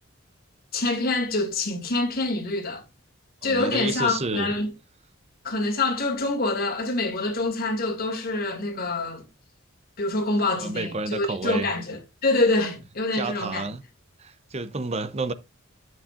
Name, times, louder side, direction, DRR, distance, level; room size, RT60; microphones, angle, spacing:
voice 1, 0.7-2.8 3.4-4.7 5.4-9.3 10.0-13.7, left 2 dB, 45° left, 2.3 m, -26 dB
voice 2, 3.4-4.5 10.6-11.7 13.1-13.8 14.2-15.3, right 3 dB, 30° right, 0.7 m, -30 dB
9.9 x 7.6 x 2.5 m
head